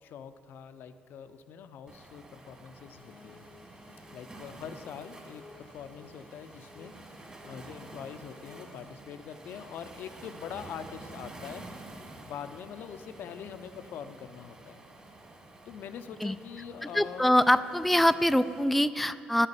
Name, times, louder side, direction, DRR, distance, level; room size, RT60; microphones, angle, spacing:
voice 1, 0.0-3.5 4.1-7.0 7.4-11.7 12.2-14.8 15.7-17.3, left 8 dB, 70° left, 10 dB, 0.6 m, -43 dB
Waves surf, 1.9-18.6, right 2 dB, 25° right, 2.3 m, -49 dB
sound 1, 2.9-9.0, left 4 dB, 35° left, 0.7 m, -56 dB
voice 2, 16.9-19.5, left 1 dB, ahead, 11 dB, 0.3 m, -24 dB
10.5 x 6.7 x 8.7 m, 2.5 s
supercardioid pair, 80°, 4 cm